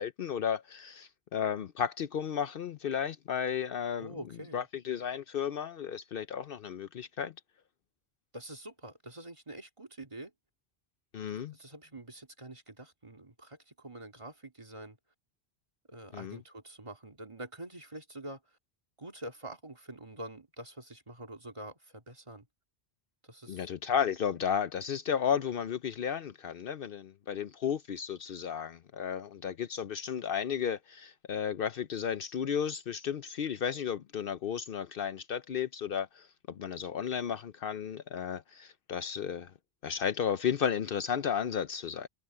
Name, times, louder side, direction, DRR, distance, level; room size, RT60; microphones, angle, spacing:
voice 1, 0.0-4.1 4.5-7.3 11.1-11.5 16.1-16.4 23.5-39.5 39.8-42.1, left 8 dB, 60° left, 0.8 m, -33 dB
voice 2, 4.0-4.7 8.3-10.3 11.5-15.0 15.9-18.6 19.0-22.5 23.2-23.7, right 1 dB, 30° right, 2.3 m, -46 dB
omnidirectional pair, 1.1 m